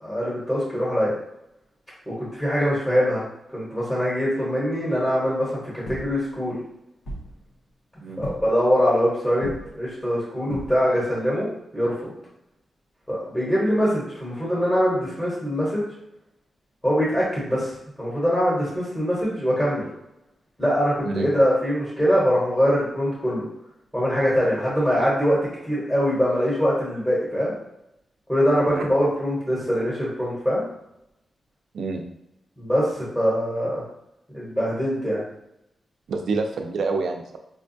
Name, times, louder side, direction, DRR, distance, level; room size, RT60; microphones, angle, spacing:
voice 1, 0.0-1.1 2.1-3.2 3.5-6.6 8.2-11.5 11.7-12.1 13.1-15.9 16.8-17.7 18.0-19.9 20.6-23.4 23.9-27.5 28.3-30.6 32.6-33.8 34.3-35.2, equal, 10° left, -7 dB, 1.0 m, -23 dB
sound 1, 5.8-6.6 7.0-7.7 8.2-8.7 9.3-10.0 10.5-11.1 12.3-12.4 14.4-14.5, left 1 dB, 75° left, 0.9 m, -37 dB
voice 2, 36.1-37.4, right 3 dB, 75° right, 3 dB, 0.4 m, -27 dB
4.7 x 2.2 x 2.6 m, 0.82 s
wide cardioid pair, 180°, 0 cm